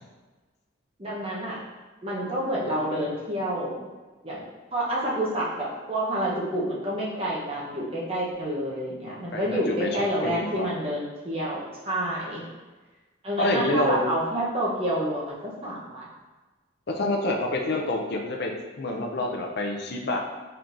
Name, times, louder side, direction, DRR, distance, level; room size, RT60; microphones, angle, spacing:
voice 1, 1.0-1.6 2.0-3.9 4.2-4.4 4.7-12.4 13.2-16.1, right 1 dB, 30° right, -5 dB, 0.8 m, -28 dB
voice 2, 9.0-9.9 10.2-10.7 13.4-14.1 16.9-18.5 18.8-20.2, left 1 dB, 50° left, 2 dB, 0.5 m, -27 dB
4.4 x 3.7 x 2.6 m, 1.3 s
head